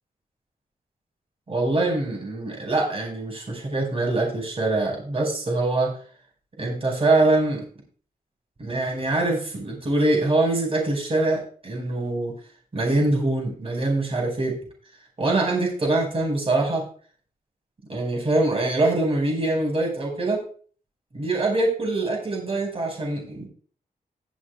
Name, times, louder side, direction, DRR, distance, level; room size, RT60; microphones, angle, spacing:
voice 1, 1.5-5.9 6.6-7.6 8.6-12.3 12.7-14.6 15.2-16.8 17.9-20.4 21.1-23.5, right 2 dB, 35° right, -1 dB, 4.9 m, -24 dB
20.5 x 7.3 x 2.3 m, 0.44 s
wide cardioid pair, 140°, 16 cm